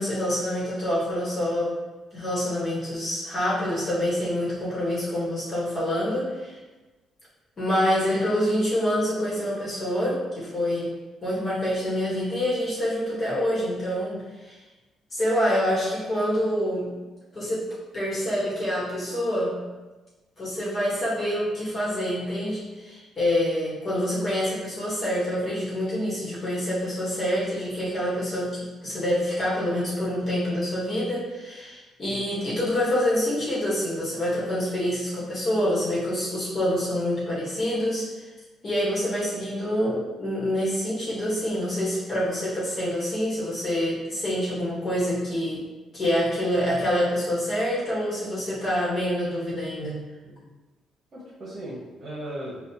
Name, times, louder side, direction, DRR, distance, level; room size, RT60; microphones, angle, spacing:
voice 1, 0.0-1.7 2.1-6.5 7.6-10.9 11.2-14.6 15.1-16.9 17.3-17.6 17.9-19.5 20.4-38.3 38.6-45.6 45.9-50.0, equal, 40° left, -8 dB, 1.3 m, -26 dB
voice 2, 51.1-52.6, right 1 dB, 45° right, -6 dB, 1.0 m, -38 dB
4.1 x 2.4 x 2.8 m, 1.2 s
cardioid pair, 90°, 0 cm